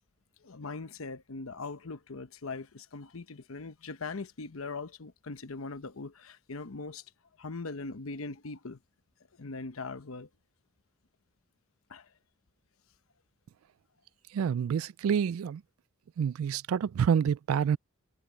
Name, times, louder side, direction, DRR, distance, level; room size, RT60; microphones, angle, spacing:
voice 1, 0.4-7.1 7.4-8.8 9.3-10.3 11.9-12.1, left 3 dB, 80° left, 0.9 m, -40 dB
voice 2, 14.3-15.6 16.2-17.8, right 7 dB, 90° right, 0.3 m, -28 dB
head